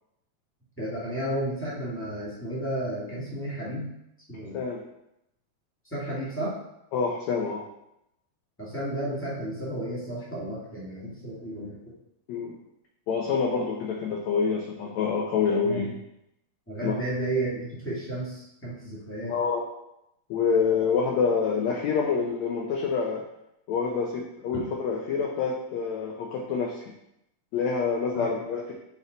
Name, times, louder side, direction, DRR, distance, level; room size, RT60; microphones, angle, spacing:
voice 1, 0.8-3.9 4.3-4.6 5.8-6.5 8.6-11.8 15.6-15.8 16.7-19.3 24.5-24.6 28.1-28.4, right 1 dB, 10° left, -9 dB, 0.5 m, -32 dB
voice 2, 6.9-7.6 12.3-12.6 13.1-15.9 16.8-17.0 19.3-19.6 20.3-23.2 23.7-26.8 27.5-28.7, left 5 dB, 90° left, 0 dB, 1.5 m, -27 dB
6.2 x 4.3 x 3.9 m, 0.82 s
omnidirectional pair, 4.1 m